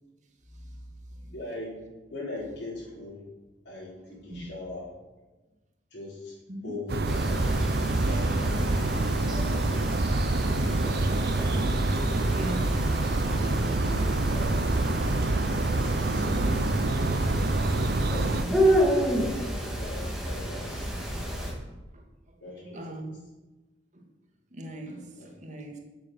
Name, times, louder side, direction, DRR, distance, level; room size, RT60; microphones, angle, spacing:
voice 1, 0.5-1.3 4.3-4.5 6.5-6.7 12.3-12.7 16.2-16.5 18.4-18.5 21.9-23.2 23.9-24.1 24.5-25.8, right 1 dB, 40° right, 2 dB, 2.0 m, -40 dB
voice 2, 1.1-1.8 2.1-3.2 3.6-4.9 5.9-6.3 6.6-9.6 10.2-11.1 12.1-12.5 13.4-14.6 15.5-16.7 17.7-21.1 22.4-22.8 25.2-25.3, left 2 dB, 60° left, -10 dB, 4.4 m, -41 dB
sound 1, 6.9-18.4, right 2 dB, 55° right, 0.7 m, -26 dB
sound 2, 7.1-21.5, equal, 5° right, 2.2 m, -30 dB
12.0 x 7.9 x 6.5 m, 1.1 s
head